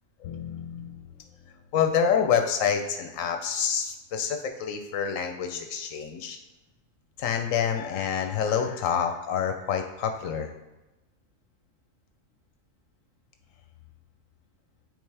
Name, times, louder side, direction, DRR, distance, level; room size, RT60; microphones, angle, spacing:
voice 1, 0.2-1.0 1.7-6.4 7.2-10.5, left 7 dB, 80° left, 5 dB, 1.0 m, -27 dB
8.6 x 3.5 x 3.3 m, 1.0 s
omnidirectional pair, 1.4 m